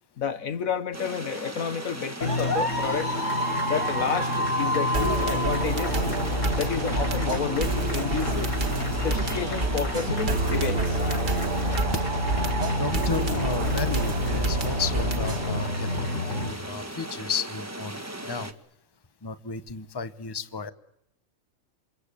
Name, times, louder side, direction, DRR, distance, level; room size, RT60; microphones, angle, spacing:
voice 1, 0.2-3.1 3.7-6.0 6.5-8.5 9.0-11.0, left 6 dB, 90° left, 1.9 m, -30 dB
sound 1, 0.9-18.5, right 1 dB, 10° right, 1.4 m, -38 dB
sound 2, 2.2-16.5, left 1 dB, 65° left, 4.7 m, -29 dB
sound 3, 4.9-15.6, right 2 dB, 35° right, 1.7 m, -29 dB
voice 2, 12.8-18.5 19.2-20.7, left 5 dB, 20° left, 1.0 m, -33 dB
28.0 x 24.0 x 8.4 m
omnidirectional pair, 1.4 m